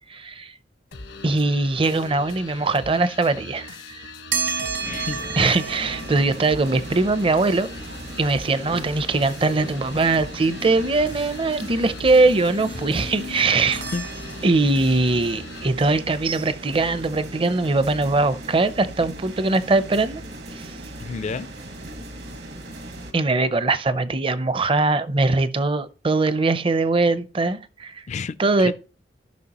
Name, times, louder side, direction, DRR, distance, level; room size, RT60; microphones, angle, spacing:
voice 1, 0.1-0.5 1.2-3.8 5.4-7.7 8.2-13.8 14.4-20.2 20.5-20.7 23.1-28.0 28.4-28.7, right 3 dB, 30° right, 0.5 m, -21 dB
sound 1, 0.9-15.7, left 3 dB, 80° left, 1.1 m, -41 dB
sound 2, 4.3-14.9, right 5 dB, 80° right, 3.0 m, -34 dB
voice 2, 4.8-5.2 8.7-8.8 13.9-14.1 21.0-21.5 28.1-28.7, left 4 dB, 40° left, 0.4 m, -30 dB
sound 3, 4.8-23.1, right 1 dB, 65° right, 1.3 m, -38 dB
13.5 x 5.8 x 2.9 m
head